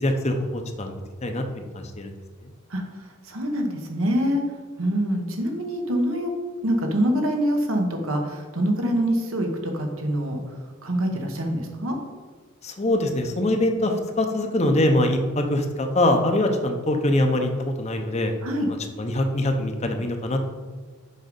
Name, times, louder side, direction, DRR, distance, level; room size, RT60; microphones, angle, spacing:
voice 1, 0.0-2.1 12.6-18.3 19.0-20.4, left 1 dB, 30° left, 5 dB, 0.7 m, -23 dB
voice 2, 3.3-4.4 4.8-6.3 6.6-10.4 10.8-12.0 18.4-18.7, equal, 80° right, 3 dB, 1.2 m, -25 dB
6.4 x 5.3 x 5.2 m, 1.5 s
head